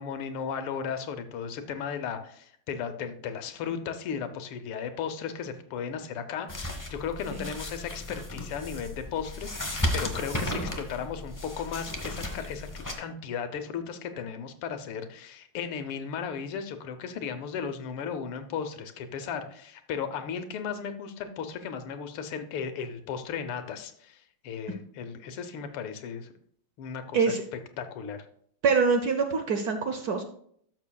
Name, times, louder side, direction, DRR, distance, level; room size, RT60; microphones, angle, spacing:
voice 1, 0.0-26.3 26.8-27.4 27.8-28.3, left 7 dB, 85° left, 8 dB, 1.8 m, -35 dB
sound 1, 6.5-12.9, left 1 dB, 30° left, 0.3 m, -34 dB
voice 2, 28.6-30.2, right 5 dB, 60° right, 6 dB, 1.0 m, -25 dB
12.5 x 6.6 x 2.3 m, 0.64 s
omnidirectional pair, 2.4 m